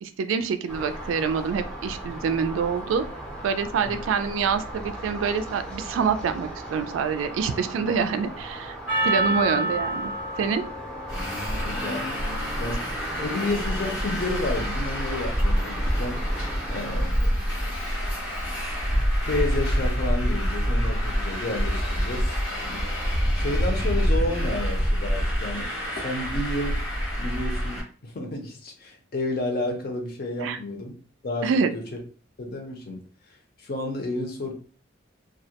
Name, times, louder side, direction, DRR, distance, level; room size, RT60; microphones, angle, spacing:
voice 1, 0.0-3.1 3.4-8.7 9.0-10.7 30.4-30.6 31.4-31.7, right 6 dB, 85° right, 11 dB, 0.3 m, -26 dB
sound 1, 0.7-17.1, right 1 dB, 5° left, 0.5 m, -38 dB
Percussion, 8.9-13.5, right 1 dB, 90° left, 1.3 m, -30 dB
voice 2, 9.0-9.6 11.5-12.1 12.6-12.9 13.2-16.2 16.7-17.7 19.3-22.4 22.6-22.9 23.3-26.8 27.2-31.0 31.2-32.0 32.4-34.5, left 2 dB, 50° left, 3 dB, 0.6 m, -31 dB
Traffic noise roadway noise, 11.1-27.8, equal, 70° left, 1.0 m, -26 dB
2.3 x 2.1 x 2.8 m, 0.39 s
head